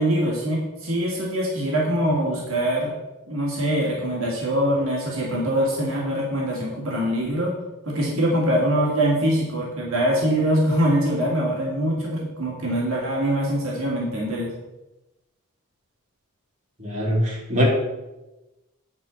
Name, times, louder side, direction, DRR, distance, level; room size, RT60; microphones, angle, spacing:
voice 1, 0.0-2.9 3.3-7.6 7.9-14.5, equal, 65° right, -3 dB, 2.1 m, -23 dB
voice 2, 16.8-17.7, equal, 35° right, -4 dB, 2.7 m, -22 dB
9.6 x 4.5 x 6.3 m, 1.0 s
head